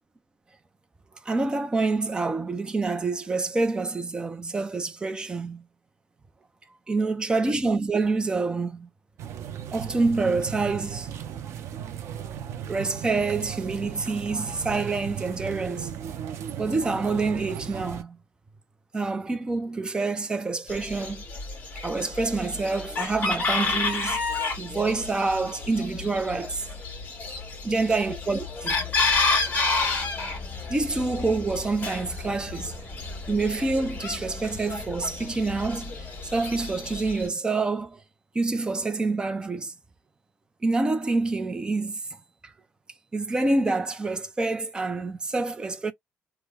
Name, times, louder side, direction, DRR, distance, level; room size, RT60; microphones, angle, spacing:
voice 1, 1.3-5.6 6.9-8.9 9.7-11.1 12.7-16.0 16.6-18.2 18.9-21.2 21.8-24.2 24.6-26.7 27.6-28.8 30.7-32.7 33.3-38.0 38.3-39.7 40.6-42.0 42.4-42.5 43.1-45.9, right 3 dB, 20° right, 0.6 m, -27 dB
sound 1, 9.2-18.0, right 9 dB, 75° right, 0.7 m, -36 dB
Chicken rooster, 20.7-37.3, left 3 dB, 35° left, 1.8 m, -30 dB
3.3 x 2.3 x 3.3 m
cardioid pair, 155°, 5 cm